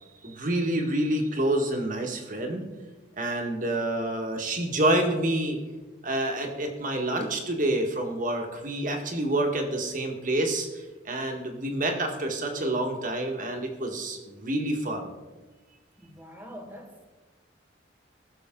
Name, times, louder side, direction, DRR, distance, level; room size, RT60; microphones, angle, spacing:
voice 1, 0.2-2.6 3.2-5.6 6.0-15.1, right 1 dB, 45° right, 3 dB, 1.7 m, -28 dB
voice 2, 16.0-17.1, equal, 10° right, 1 dB, 2.0 m, -44 dB
20.0 x 6.8 x 3.8 m, 1.2 s
head